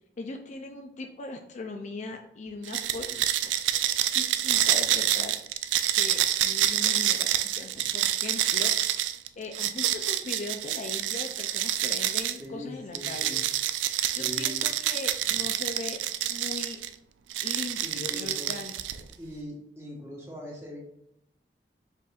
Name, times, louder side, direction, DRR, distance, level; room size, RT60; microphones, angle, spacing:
voice 1, 0.2-3.5 4.1-5.4 5.9-8.7 9.4-13.4 14.1-16.8 17.4-19.1, left 3 dB, 40° left, 4 dB, 0.4 m, -39 dB
sound 1, 2.7-12.4 13.0-16.9 17.3-19.1, right 12 dB, 85° right, 0.3 m, -27 dB
voice 2, 12.4-13.4 14.0-14.6 15.3-15.4 17.8-18.5 19.2-20.8, equal, 15° right, -3 dB, 1.2 m, -41 dB
4.9 x 4.0 x 2.4 m, 0.80 s
head